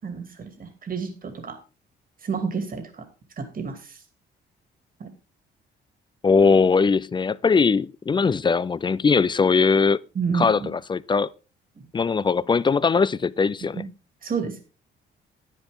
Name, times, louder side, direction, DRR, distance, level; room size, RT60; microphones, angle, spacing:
voice 1, 0.0-1.6 2.2-3.0 3.4-4.0 5.0-5.1 10.1-10.7 13.7-13.9 14.2-14.6, right 5 dB, 45° right, 2.4 m, -30 dB
voice 2, 6.2-10.0 10.3-11.3 11.9-13.8, left 5 dB, 25° left, 0.4 m, -20 dB
9.9 x 9.9 x 3.7 m
cardioid pair, 90°, 20 cm